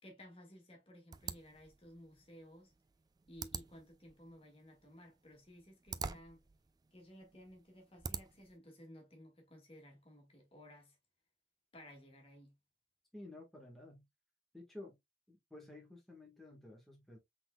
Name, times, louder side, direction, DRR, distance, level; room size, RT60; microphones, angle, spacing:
voice 1, 0.0-2.7 3.3-6.5 6.9-11.0 11.7-12.6, equal, 30° left, 1.8 m, -57 dB
sound 1, 1.1-8.6, right 5 dB, 20° right, 0.3 m, -48 dB
voice 2, 13.1-14.1 14.5-15.0 15.3-17.2, left 2 dB, ahead, 1.4 m, -53 dB
5.7 x 3.9 x 2.2 m
head